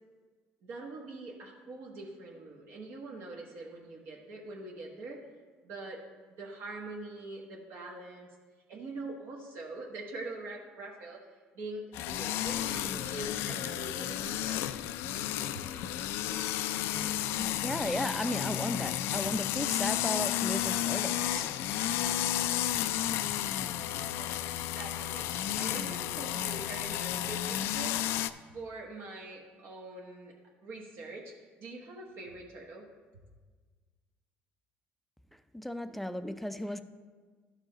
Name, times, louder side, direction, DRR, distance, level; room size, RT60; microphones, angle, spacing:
voice 1, 0.6-5.2 5.6-6.0 6.4-8.3 8.7-11.2 11.5-14.6 15.5-15.6 24.1-24.3 24.7-28.0 28.5-30.3 30.6-31.3 31.6-32.9, right 2 dB, 65° right, -1 dB, 1.1 m, -43 dB
sound 1, 11.9-28.3, left 12 dB, 75° left, 0.3 m, -32 dB
voice 2, 17.3-21.5 35.5-36.8, left 1 dB, 5° left, 10 dB, 0.4 m, -35 dB
12.5 x 4.8 x 3.9 m, 1.5 s
cardioid pair, 110°, 4 cm